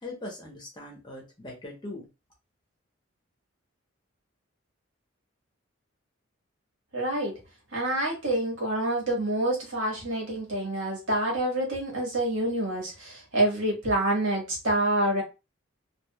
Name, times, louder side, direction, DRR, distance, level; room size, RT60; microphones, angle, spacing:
voice 1, 0.0-2.1, left 2 dB, 20° left, -1 dB, 0.9 m, -40 dB
voice 2, 6.9-7.4 7.7-15.2, right 1 dB, 70° right, -2 dB, 1.5 m, -27 dB
3.4 x 2.5 x 2.2 m, 0.27 s
head